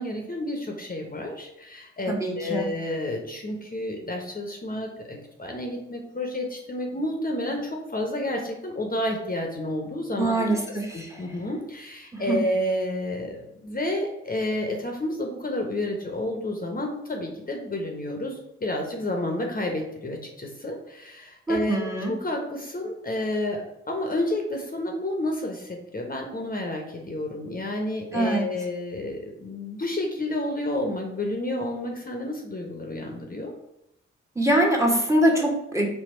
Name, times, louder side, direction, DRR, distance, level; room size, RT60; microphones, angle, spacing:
voice 1, 0.0-23.6 23.9-33.5, left 1 dB, 30° left, 1 dB, 1.0 m, -30 dB
voice 2, 2.1-2.7 10.2-11.1 12.1-12.4 21.5-22.1 28.1-28.5 34.4-35.9, right 1 dB, 10° right, 1 dB, 1.2 m, -23 dB
4.3 x 2.3 x 4.3 m, 0.85 s
hypercardioid pair, 45°, 30 cm